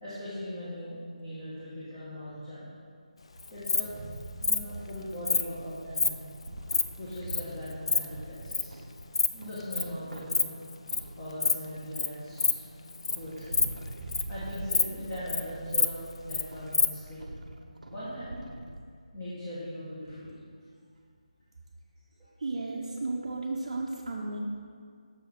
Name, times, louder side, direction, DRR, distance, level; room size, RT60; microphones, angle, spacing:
voice 1, 0.0-2.7 3.5-3.9 4.4-6.2 7.0-8.8 9.3-10.5 11.2-12.6 13.1-13.6 14.3-17.2 17.9-18.5 19.1-20.4 22.2-22.3, equal, 15° left, -12 dB, 1.4 m, -40 dB
Insect, 3.4-3.8 4.4-4.6 5.3-5.4 5.9-6.1 6.5-6.8 7.3-7.4 7.7-8.0 8.5-8.7 9.0-9.3 9.5-9.8 10.2-10.4 10.7-11.0 11.4-11.6 12.0-12.1 12.4-12.5 12.9-13.2 13.4-14.3 14.7-14.8 15.1-15.4 15.7-16.4 16.7-16.9, left 4 dB, 45° left, 0.4 m, -26 dB
sound 1, 3.5-8.1 8.4-8.5 13.5-17.4, right 2 dB, 25° right, 1.4 m, -47 dB
sound 2, 5.5-18.8, right 1 dB, 90° right, 0.7 m, -46 dB
voice 2, 22.4-24.4, right 3 dB, 45° right, -5 dB, 0.8 m, -34 dB
6.3 x 6.2 x 4.9 m, 2.2 s
figure-of-eight pair, 170°, 4 cm